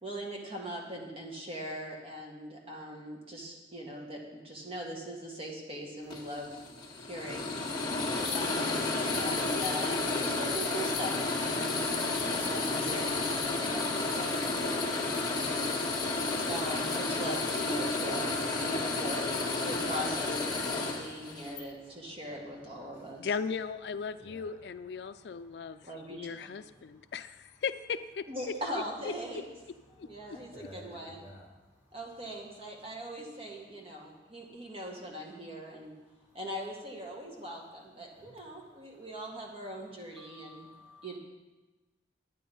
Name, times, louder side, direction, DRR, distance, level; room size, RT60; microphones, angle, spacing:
voice 1, 0.0-6.5 7.0-7.5 8.3-11.1 11.4-14.3 16.4-19.3 19.6-23.2 25.8-26.5 28.3-29.5 30.0-31.3 31.9-35.9 36.3-40.7 41.0-41.2, equal, 35° right, -1 dB, 1.9 m, -41 dB
sound 1, 6.1-21.6, left 3 dB, 25° left, 1.7 m, -31 dB
voice 2, 20.5-21.6 22.2-23.3 24.2-24.6 25.0-25.9 26.9-27.1 29.9-32.0 34.1-34.6 36.2-36.3 38.1-39.0 40.2-41.2, left 1 dB, 10° right, -4 dB, 2.7 m, -56 dB
voice 3, 23.2-25.8 26.1-28.3 29.0-29.1 30.0-30.7, left 6 dB, 70° left, 12 dB, 0.4 m, -37 dB
10.0 x 9.4 x 5.4 m, 1.1 s
head